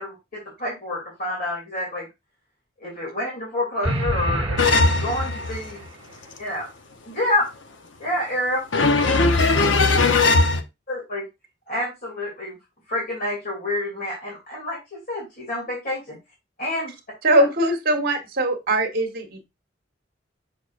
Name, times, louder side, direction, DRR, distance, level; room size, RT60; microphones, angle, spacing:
voice 1, 0.0-2.1 2.8-4.7 5.0-5.8 6.4-6.7 7.0-7.5 8.0-8.6 10.9-11.2 11.7-12.6 12.9-16.2 16.6-16.9, left 1 dB, 50° left, 2.9 m, -28 dB
sound 1, 3.8-5.9, right 1 dB, 30° right, 1.5 m, -28 dB
voice 2, 4.6-5.5 6.0-6.4 8.7-10.6, left 3 dB, 70° left, 0.9 m, -19 dB
voice 3, 17.2-19.5, right 1 dB, 50° right, 1.3 m, -21 dB
6.5 x 6.0 x 2.6 m
head